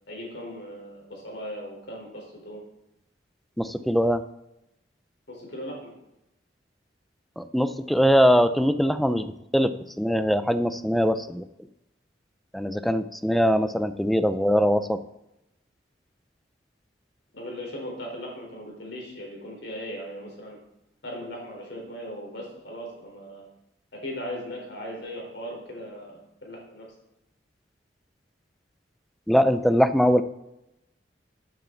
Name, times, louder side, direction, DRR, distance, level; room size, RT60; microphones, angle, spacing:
voice 1, 0.1-2.6 5.3-5.9 17.3-20.6 21.0-23.5 23.9-26.9, equal, 65° left, -1 dB, 4.2 m, -38 dB
voice 2, 3.6-4.2 7.4-11.5 12.5-15.0 29.3-30.2, equal, ahead, 11 dB, 0.5 m, -22 dB
13.5 x 9.0 x 4.0 m, 0.88 s
head